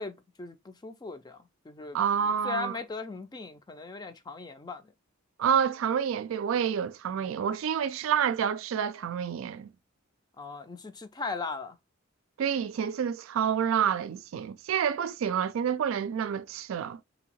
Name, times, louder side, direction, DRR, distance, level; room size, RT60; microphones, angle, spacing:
voice 1, 0.0-4.9 7.1-7.3 10.4-11.8, left 4 dB, 20° left, 0.4 m, -38 dB
voice 2, 1.9-2.7 5.4-9.7 12.4-17.0, right 8 dB, 85° right, 0.3 m, -28 dB
2.9 x 2.7 x 2.9 m
head